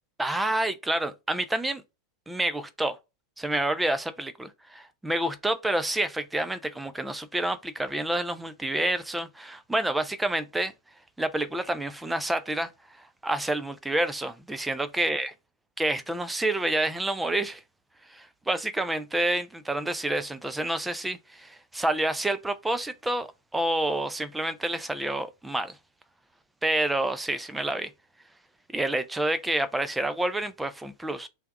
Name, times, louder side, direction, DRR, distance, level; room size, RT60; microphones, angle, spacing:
voice 1, 0.2-1.8 2.3-3.0 3.4-10.7 11.2-12.7 13.2-15.3 15.8-17.6 18.1-25.8 26.6-27.9 28.7-31.3, right 1 dB, 5° right, 0.5 m, -28 dB
3.4 x 3.4 x 3.9 m
figure-of-eight pair, 90°, 0 cm